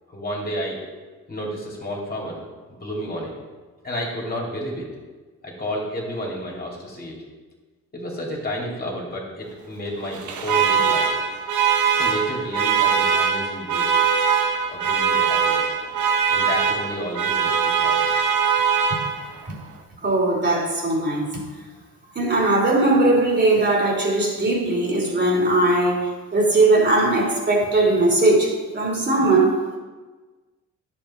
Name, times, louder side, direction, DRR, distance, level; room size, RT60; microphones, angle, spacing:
voice 1, 0.1-0.8 1.3-2.4 2.8-3.3 3.8-4.9 5.4-7.2 7.9-11.1 12.0-13.9 14.7-15.7 16.3-18.0, equal, 30° left, -3 dB, 2.8 m, -31 dB
Alarm, 10.0-19.5, right 6 dB, 75° right, 1.2 m, -21 dB
voice 2, 20.0-21.4 22.1-29.5, right 2 dB, 35° right, -2 dB, 2.9 m, -19 dB
10.5 x 7.5 x 4.3 m, 1.3 s
cardioid pair, 90°, 30 cm